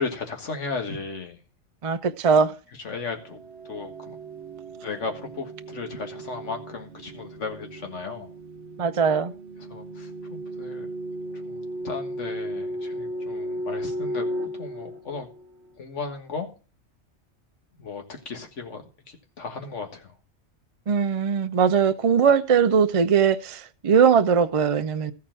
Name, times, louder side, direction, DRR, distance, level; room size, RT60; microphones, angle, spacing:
voice 1, 0.0-1.4 2.8-4.2 4.8-8.3 9.6-10.9 11.5-14.3 14.5-15.3 15.8-16.5 17.8-20.1, left 4 dB, 85° left, 1.9 m, -35 dB
voice 2, 1.8-2.5 8.8-9.3 20.9-25.1, right 6 dB, 45° right, 0.4 m, -20 dB
sound 1, 3.0-15.7, right 1 dB, 65° right, 1.3 m, -35 dB
14.0 x 4.7 x 7.5 m
omnidirectional pair, 1.2 m